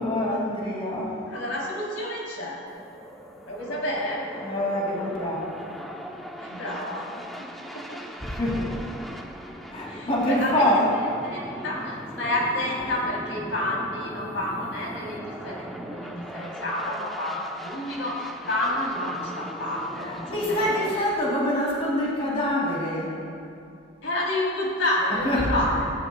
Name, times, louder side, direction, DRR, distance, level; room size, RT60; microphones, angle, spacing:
voice 1, 0.0-1.1 4.4-5.5 8.2-8.7 9.7-10.9 20.0-23.2 25.1-25.6, left 1 dB, 30° left, -5 dB, 2.7 m, -25 dB
voice 2, 1.3-2.6 3.4-4.3 6.4-8.0 9.5-10.8 11.2-21.1 24.0-25.8, left 1 dB, 75° left, -4 dB, 3.4 m, -30 dB
sound 1, 2.7-21.0, equal, ahead, 0.8 m, -39 dB
17.5 x 17.0 x 2.3 m, 2.6 s
head